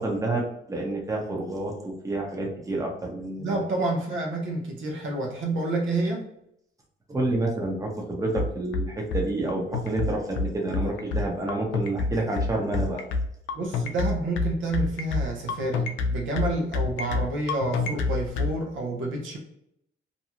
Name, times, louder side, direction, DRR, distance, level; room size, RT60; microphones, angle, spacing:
voice 1, 0.0-3.6 7.1-13.1, right 2 dB, 15° right, 0 dB, 0.8 m, -29 dB
voice 2, 3.4-6.3 13.5-19.4, right 2 dB, 75° right, 1 dB, 0.8 m, -29 dB
sound 1, 8.4-18.5, left 3 dB, 75° left, 0.4 m, -27 dB
2.7 x 2.3 x 2.8 m, 0.76 s
cardioid pair, 90°, 20 cm